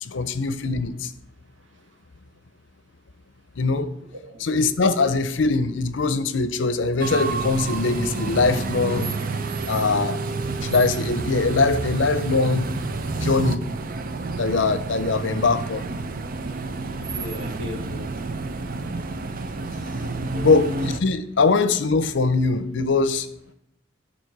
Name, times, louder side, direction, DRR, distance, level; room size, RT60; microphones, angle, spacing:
voice 1, 0.0-1.1 3.6-3.9 4.4-9.1 9.7-10.2 10.6-12.7 13.2-13.6 14.4-15.8 20.4-23.3, left 3 dB, 75° left, 0.6 m, -22 dB
sound 1, 7.0-21.0, right 3 dB, 50° right, 0.6 m, -29 dB
voice 2, 17.1-18.1 20.2-20.5, left 1 dB, 85° right, 1.5 m, -37 dB
10.5 x 4.3 x 4.6 m
head